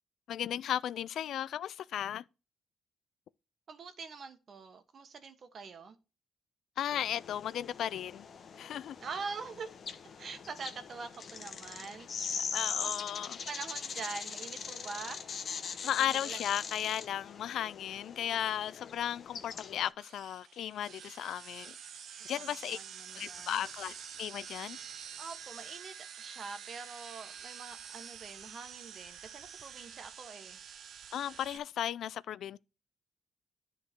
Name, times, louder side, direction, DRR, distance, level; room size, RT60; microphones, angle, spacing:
voice 1, 0.3-2.2 6.8-8.2 8.6-9.0 12.5-13.4 15.8-21.7 22.2-22.8 23.1-24.8 31.1-32.6, left 10 dB, 70° left, 0.3 m, -35 dB
voice 2, 3.7-6.0 9.0-9.7 10.2-13.0 13.4-15.3 16.0-16.4 22.3-23.6 25.2-30.6, right 5 dB, 50° right, 1.3 m, -45 dB
sound 1, 6.9-19.9, left 6 dB, 50° left, 1.0 m, -41 dB
sound 2, 20.0-31.6, right 8 dB, 65° right, 0.8 m, -48 dB
11.0 x 3.7 x 4.5 m
cardioid pair, 90°, 0 cm